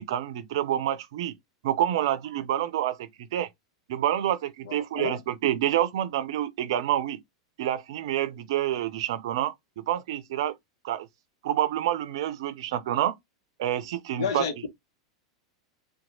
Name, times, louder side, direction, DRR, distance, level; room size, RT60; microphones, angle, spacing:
voice 1, 0.0-1.3 1.6-3.5 3.9-7.2 7.6-10.5 10.8-11.1 11.4-13.2 13.6-14.7, right 11 dB, 70° right, 0.5 m, -28 dB
voice 2, 4.7-5.2 14.2-14.7, left 6 dB, 75° left, 0.8 m, -31 dB
2.8 x 2.2 x 2.6 m
hypercardioid pair, 100°, 3 cm